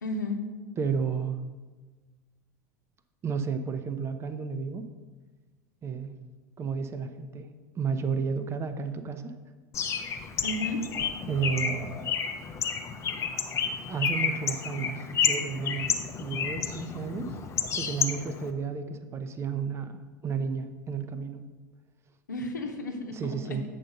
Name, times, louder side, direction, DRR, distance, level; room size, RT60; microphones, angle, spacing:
voice 1, 0.0-0.4 10.4-10.8 22.3-23.6, left 2 dB, 80° left, 4 dB, 0.9 m, -33 dB
voice 2, 0.8-1.4 3.2-4.8 5.8-6.2 6.6-7.5 7.8-9.3 11.3-11.9 13.9-15.9 16.2-17.3 17.7-20.0 20.2-21.4 23.1-23.6, right 6 dB, 25° right, 9 dB, 0.6 m, -32 dB
Bird, 9.7-18.5, left 6 dB, 30° left, 0.7 m, -31 dB
7.5 x 3.9 x 6.4 m, 1.3 s
figure-of-eight pair, 75°, 10 cm